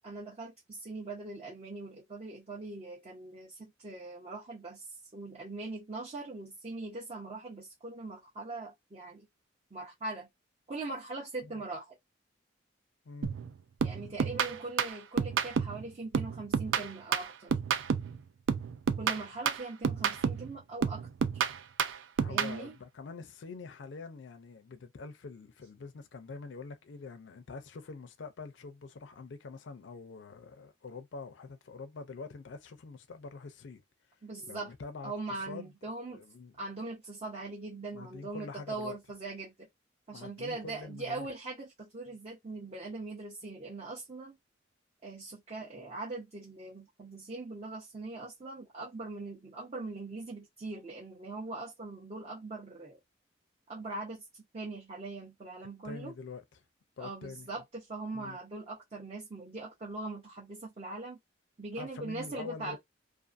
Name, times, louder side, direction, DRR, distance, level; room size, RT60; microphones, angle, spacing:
voice 1, 0.0-4.9 5.1-9.3 9.7-10.3 10.7-12.0 13.8-17.5 19.0-21.5 22.3-22.7 34.2-34.7 35.0-36.2 36.6-39.7 40.1-44.4 45.0-53.0 53.7-54.2 54.5-56.1 57.0-61.2 61.6-62.8, right 3 dB, 30° right, 0.6 m, -41 dB
voice 2, 13.1-13.4 22.2-33.8 34.5-35.1 35.4-35.7 36.1-36.5 37.9-39.0 40.1-41.3 55.8-56.4 57.0-57.5 58.1-58.4 61.8-62.8, left 4 dB, 70° left, 0.4 m, -45 dB
sound 1, 13.2-13.5 13.8-15.8 16.1-18.2 18.5-20.5 20.8-22.6, right 6 dB, 80° right, 0.4 m, -30 dB
2.5 x 2.5 x 2.4 m
head